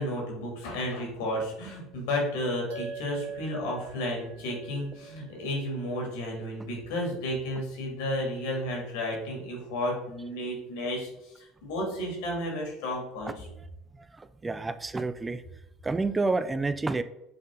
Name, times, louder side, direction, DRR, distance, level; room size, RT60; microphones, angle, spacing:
voice 1, 0.0-13.4, left 1 dB, 75° left, 0 dB, 2.4 m, -32 dB
sound 1, 2.7-7.4, right 6 dB, 75° right, 1.3 m, -44 dB
voice 2, 14.0-15.4 15.8-17.0, right 3 dB, 20° right, 12 dB, 0.4 m, -29 dB
7.7 x 3.8 x 3.8 m, 0.91 s
hypercardioid pair, 75°, 0 cm